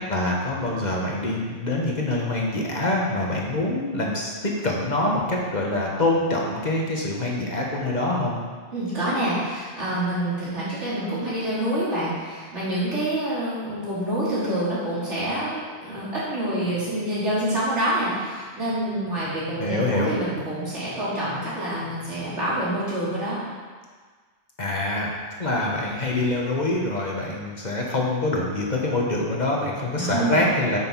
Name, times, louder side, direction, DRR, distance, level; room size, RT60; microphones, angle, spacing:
voice 1, 0.1-8.4 19.6-20.1 24.6-25.1 25.4-30.8, left 2 dB, 40° left, -2 dB, 1.4 m, -25 dB
voice 2, 8.7-23.4 30.0-30.5, right 1 dB, 90° right, -10 dB, 3.6 m, -27 dB
9.5 x 6.3 x 4.6 m, 1.5 s
omnidirectional pair, 1.2 m